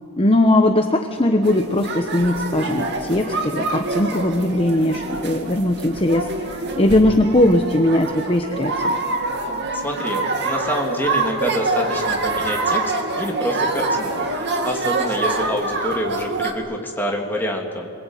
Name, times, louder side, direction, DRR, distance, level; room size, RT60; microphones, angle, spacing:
voice 1, 0.2-8.9, left 1 dB, 25° left, 5 dB, 1.1 m, -19 dB
sound 1, 1.4-16.5, right 3 dB, 50° right, 2.4 m, -25 dB
voice 2, 9.7-12.8 13.2-17.9, equal, 10° left, 0 dB, 3.1 m, -26 dB
27.5 x 22.0 x 9.2 m, 2.5 s
head